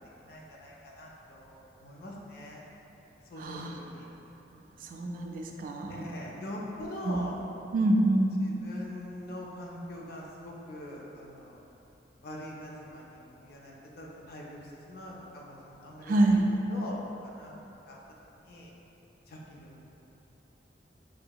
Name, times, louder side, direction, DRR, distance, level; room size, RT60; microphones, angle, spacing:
voice 1, 0.2-2.6 3.3-4.1 5.9-7.4 8.4-11.6 12.2-16.4 16.7-17.6 17.9-18.0 18.4-18.7 19.3-19.9, left 1 dB, 60° left, -3 dB, 0.5 m, -43 dB
voice 2, 3.4-3.7 4.5-6.0 7.0-7.2 7.7-8.3 16.0-16.4, right 1 dB, 50° right, 1 dB, 0.3 m, -26 dB
4.8 x 2.8 x 2.2 m, 3.0 s
head